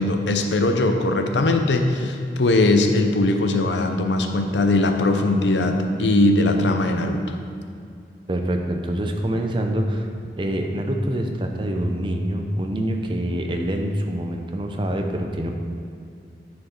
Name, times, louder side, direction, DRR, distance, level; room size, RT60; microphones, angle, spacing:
voice 1, 0.0-7.4, left 2 dB, 85° left, 5 dB, 0.7 m, -20 dB
voice 2, 8.3-10.1 10.4-15.5, right 1 dB, 25° right, 3 dB, 0.6 m, -25 dB
9.5 x 4.6 x 4.4 m, 2.4 s
head